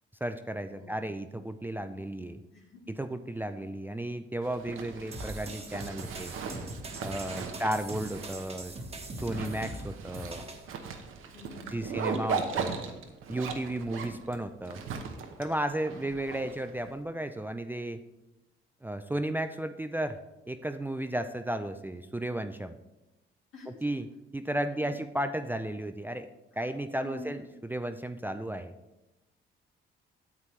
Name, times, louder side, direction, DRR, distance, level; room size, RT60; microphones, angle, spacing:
voice 1, 0.2-2.4 3.0-6.3 7.0-8.8 9.2-10.5 11.7-12.8 13.3-14.8 15.4-18.0 18.8-20.2 20.5-22.7 23.7-24.1 24.3-26.3 26.6-28.7, right 1 dB, 10° right, 8 dB, 0.4 m, -34 dB
voice 2, 0.7-1.1 2.5-3.0 7.3-7.6 11.3-11.9 15.8-16.1 23.5-23.9 24.7-25.0 26.5-26.7 27.0-27.4, left 4 dB, 70° left, -3 dB, 1.6 m, -48 dB
Zipper (clothing), 4.4-16.9, right 5 dB, 75° right, 1.0 m, -38 dB
sound 1, 5.1-10.7, right 2 dB, 30° right, 1.3 m, -41 dB
9.4 x 7.5 x 3.2 m, 0.98 s
cardioid pair, 80°, 21 cm